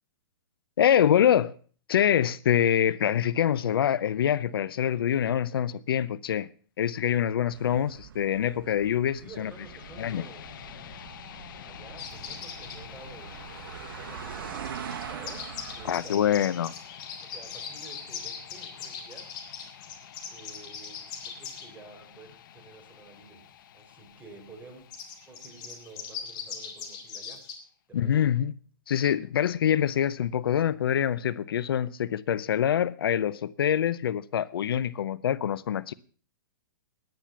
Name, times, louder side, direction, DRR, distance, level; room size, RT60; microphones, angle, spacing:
voice 1, 0.8-1.5 1.9-6.5 6.8-9.5 10.0-10.2 15.9-16.7 27.9-28.5 28.9-35.9, left 9 dB, 80° left, 0.6 m, -25 dB
sound 1, 7.5-16.0, right 9 dB, 70° right, 1.2 m, -43 dB
voice 2, 9.2-10.6 11.6-13.4 13.9-16.7 17.2-19.3 20.3-23.5 23.7-24.9 25.3-27.5 27.9-28.3, right 3 dB, 10° right, 4.1 m, -50 dB
sound 2, 9.3-27.3, left 10 dB, 65° left, 1.1 m, -48 dB
sound 3, 12.0-12.8 14.5-21.6 24.9-27.5, left 7 dB, 35° left, 3.3 m, -40 dB
11.0 x 10.5 x 7.1 m
hypercardioid pair, 135°, 12 cm